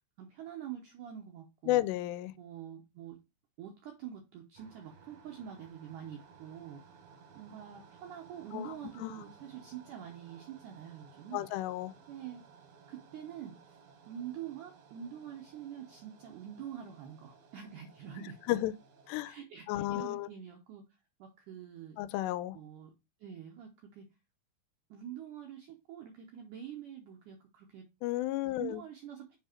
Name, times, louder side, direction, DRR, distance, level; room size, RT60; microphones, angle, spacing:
voice 1, 0.2-1.8 2.3-3.2 3.6-6.8 7.4-11.5 12.1-12.4 12.9-13.8 14.1-18.4 19.2-20.9 21.2-22.0 22.5-22.9 23.2-24.1 24.9-27.9 28.5-29.4, right 9 dB, 80° right, 1.8 m, -46 dB
voice 2, 1.7-2.3 8.5-8.7 9.0-9.1 11.3-11.9 18.5-18.7 19.1-19.3 19.7-20.3 22.0-22.6 28.0-28.8, left 15 dB, 90° left, 2.7 m, -32 dB
sound 1, 4.6-19.3, right 6 dB, 65° right, 1.7 m, -58 dB
7.3 x 3.4 x 4.3 m
omnidirectional pair, 4.8 m